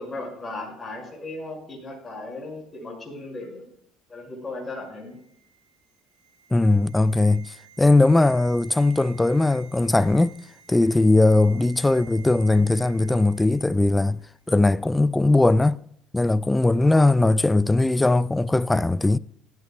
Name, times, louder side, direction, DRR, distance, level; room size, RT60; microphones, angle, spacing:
voice 1, 0.0-3.7 4.1-5.2 16.8-17.2, left 2 dB, 30° left, 5.6 m, -36 dB
sound 1, 4.7-13.9 14.2-14.4, right 7 dB, 60° right, 5.0 m, -52 dB
voice 2, 6.5-10.4 10.7-14.2 14.5-15.8 16.1-19.2, left 2 dB, 10° left, 0.4 m, -19 dB
17.5 x 12.5 x 2.3 m
supercardioid pair, 80°, 0 cm